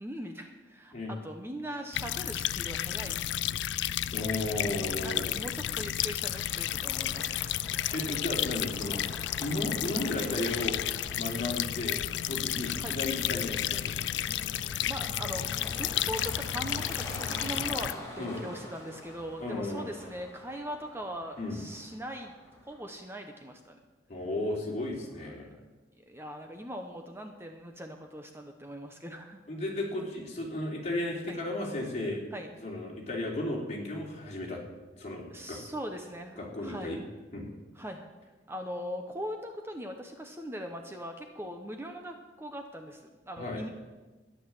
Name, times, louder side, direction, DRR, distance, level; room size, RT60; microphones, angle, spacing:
voice 1, 0.0-3.3 3.9-4.1 4.4-7.6 12.8-13.0 14.8-15.5 15.8-22.3 22.7-23.8 26.0-29.4 31.3-31.5 32.3-32.5 35.3-37.0 37.7-38.1 38.5-43.7, equal, 15° right, 4 dB, 0.9 m, -40 dB
sound 1, 1.9-17.9, left 12 dB, 75° left, 0.4 m, -32 dB
voice 2, 4.1-5.3 7.9-9.0 9.4-10.8 11.2-12.0 12.3-14.2 18.2-18.4 19.4-19.8 21.4-21.7 24.1-25.5 29.5-32.2 32.6-34.6 35.0-35.6 36.4-37.0 37.3-37.5 43.4-43.6, left 1 dB, 40° left, -2 dB, 3.3 m, -34 dB
sound 2, 6.0-22.9, left 1 dB, 15° left, 2.7 m, -46 dB
12.5 x 10.5 x 7.7 m, 1.2 s
head